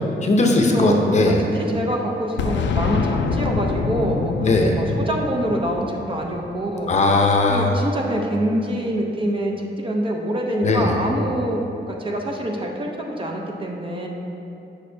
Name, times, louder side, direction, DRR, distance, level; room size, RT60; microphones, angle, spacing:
voice 1, 0.2-1.4 4.4-4.7 6.9-7.7 10.6-10.9, left 2 dB, 40° left, 1 dB, 0.7 m, -18 dB
voice 2, 0.7-6.9 7.5-11.6 11.9-14.1, right 1 dB, 30° right, 0 dB, 0.6 m, -25 dB
Boom, 2.4-7.1, left 4 dB, 85° left, 0.4 m, -25 dB
8.3 x 6.5 x 2.7 m, 2.8 s
wide cardioid pair, 145°, 19 cm